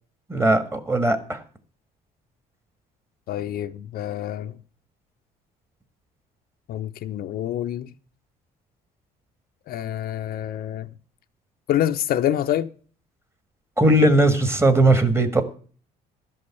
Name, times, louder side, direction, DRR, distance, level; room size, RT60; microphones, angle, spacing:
voice 1, 0.3-1.4 13.8-15.4, right 1 dB, 15° right, 1.6 m, -18 dB
voice 2, 3.3-4.6 6.7-7.9 9.7-10.9 11.7-12.7, left 11 dB, 65° left, 0.6 m, -26 dB
13.0 x 5.4 x 8.2 m
cardioid pair, 110°, 17 cm